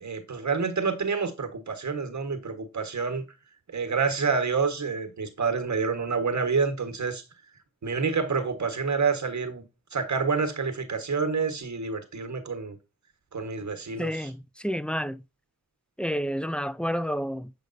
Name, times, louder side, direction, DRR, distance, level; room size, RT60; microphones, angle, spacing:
voice 1, 0.0-3.2 3.7-7.2 7.8-9.6 9.9-12.8 13.3-14.3, right 5 dB, 55° right, 1.3 m, -28 dB
voice 2, 14.0-15.2 16.0-17.5, equal, 5° left, 0.4 m, -30 dB
7.7 x 5.1 x 2.6 m
cardioid pair, 40°, 33 cm